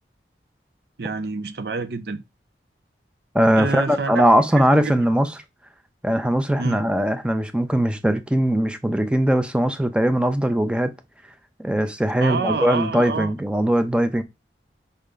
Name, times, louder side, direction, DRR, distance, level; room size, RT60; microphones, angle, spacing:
voice 1, 1.0-2.2 3.6-4.2 4.6-5.0 6.6-6.8 12.2-13.3, right 4 dB, 60° right, 0.6 m, -27 dB
voice 2, 3.3-5.3 6.0-10.9 11.6-14.2, right 1 dB, 5° right, 0.5 m, -20 dB
5.4 x 3.5 x 5.0 m
head